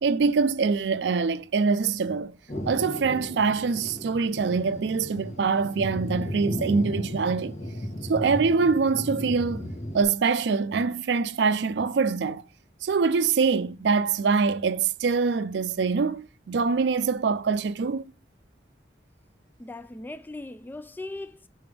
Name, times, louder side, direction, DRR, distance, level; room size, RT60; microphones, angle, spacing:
voice 1, 0.0-2.4 2.7-7.5 8.1-9.7 9.9-12.4 12.8-18.0, right 5 dB, 70° right, 0.4 m, -24 dB
Thunder, 2.5-10.0, equal, 40° left, 1.7 m, -35 dB
voice 2, 19.6-21.5, left 2 dB, 10° left, 0.3 m, -39 dB
5.8 x 5.4 x 3.3 m
head